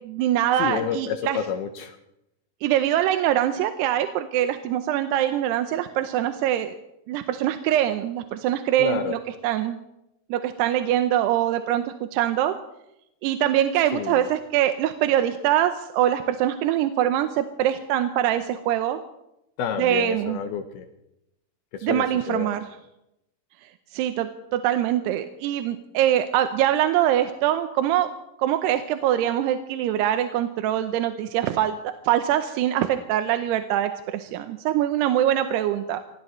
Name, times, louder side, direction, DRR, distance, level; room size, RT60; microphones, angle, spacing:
voice 1, 0.0-1.4 2.6-6.8 7.1-9.8 10.3-12.6 13.2-19.0 19.8-20.4 21.8-22.7 23.9-28.1 28.4-31.8 32.0-36.0, right 11 dB, 85° right, 8 dB, 2.8 m, -23 dB
voice 2, 0.6-2.0 8.8-9.2 13.9-14.3 19.6-20.9 21.7-22.5, left 7 dB, 75° left, 6 dB, 2.7 m, -29 dB
25.5 x 17.5 x 3.1 m, 0.84 s
omnidirectional pair, 4.7 m